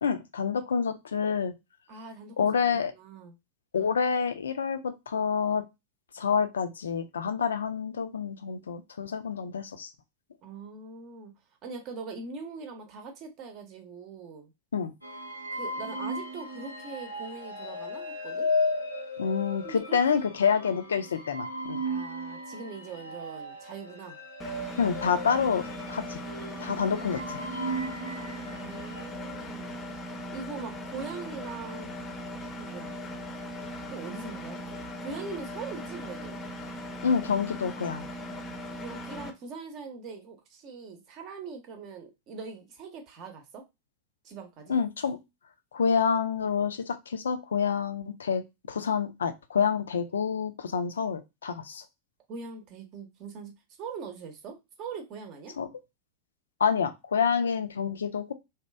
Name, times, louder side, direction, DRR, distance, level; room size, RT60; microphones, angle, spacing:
voice 1, 0.0-1.5 2.4-2.9 3.7-5.6 6.1-9.9 14.7-14.9 19.2-21.8 24.8-26.2 26.6-27.4 37.0-38.0 44.7-45.2 45.7-48.4 48.7-51.8 55.6-55.7 56.6-58.3, left 6 dB, 70° left, 0.4 m, -28 dB
voice 2, 1.9-3.3 10.4-11.3 11.6-14.5 15.5-18.5 19.6-20.3 21.8-24.2 28.5-29.8 30.3-31.9 32.6-32.9 33.9-36.4 38.8-43.6 44.2-44.8 52.3-53.5 53.8-55.5, right 4 dB, 40° right, 0.7 m, -42 dB
sound 1, 15.0-29.1, left 1 dB, 90° left, 0.7 m, -35 dB
Engine, 24.4-39.3, equal, 20° left, 0.6 m, -39 dB
2.8 x 2.3 x 2.2 m
figure-of-eight pair, 90°, 0 cm